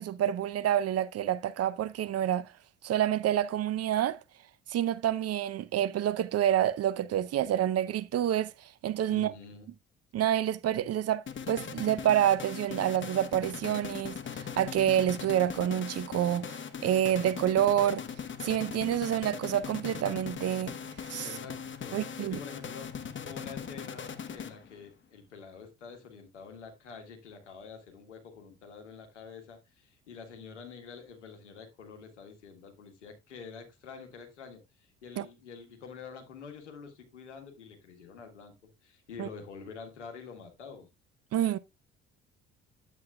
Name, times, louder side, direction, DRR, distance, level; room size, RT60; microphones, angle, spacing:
voice 1, 0.0-2.5 2.8-4.2 4.7-8.5 8.8-9.3 10.1-16.6 16.8-18.0 18.4-20.8 21.1-21.3 21.9-22.4 35.2-35.3 39.2-39.3 41.3-41.6, right 11 dB, 45° right, 0.7 m, -28 dB
voice 2, 9.1-9.7 21.2-38.5 38.8-40.9, left 5 dB, 90° left, 1.6 m, -47 dB
sound 1, 11.3-24.9, left 7 dB, 35° left, 1.1 m, -40 dB
9.5 x 8.2 x 2.3 m
hypercardioid pair, 55°, 34 cm